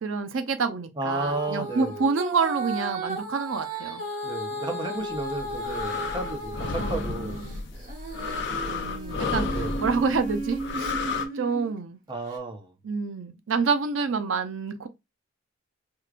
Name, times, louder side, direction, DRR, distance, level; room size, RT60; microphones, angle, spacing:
voice 1, 0.0-4.0 6.8-7.6 8.7-11.0 11.3-12.0 12.8-14.9, right 4 dB, 85° right, 0.5 m, -28 dB
voice 2, 1.0-2.0 4.2-7.4 9.5-9.8 12.1-12.7, right 2 dB, 25° right, 0.7 m, -32 dB
Female singing, 1.1-7.0 7.4-11.7 12.3-12.4, right 2 dB, 45° right, 1.2 m, -35 dB
sound 1, 5.2-11.3, left 4 dB, 65° left, 0.6 m, -32 dB
4.6 x 2.2 x 2.5 m
head